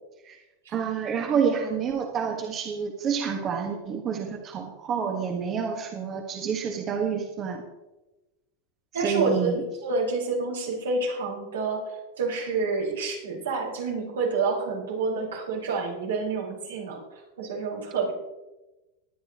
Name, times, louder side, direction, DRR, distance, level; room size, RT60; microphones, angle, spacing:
voice 1, 0.7-7.6 9.0-9.6, right 6 dB, 35° right, 1 dB, 1.7 m, -28 dB
voice 2, 8.9-11.8 12.2-17.0 17.4-18.1, right 4 dB, 85° right, -3 dB, 5.1 m, -28 dB
20.5 x 10.0 x 3.1 m, 1.1 s
hypercardioid pair, 100°, 0 cm